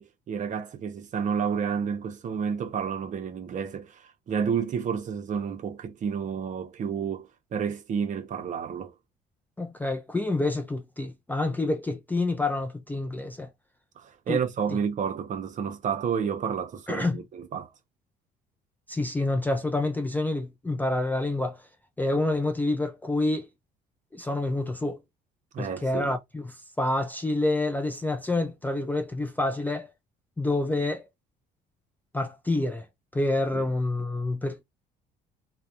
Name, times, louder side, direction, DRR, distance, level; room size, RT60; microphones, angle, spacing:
voice 1, 0.0-8.9 14.0-17.7 25.5-26.1 33.5-33.6, right 7 dB, 45° right, 0.7 m, -30 dB
voice 2, 9.6-13.5 14.3-14.4 16.9-17.2 18.9-21.6 22.0-23.5 24.1-25.0 25.6-29.9 30.4-31.0 32.1-32.9 33.1-34.6, left 2 dB, 10° left, 0.3 m, -28 dB
2.3 x 2.1 x 2.7 m
cardioid pair, 110°, 17 cm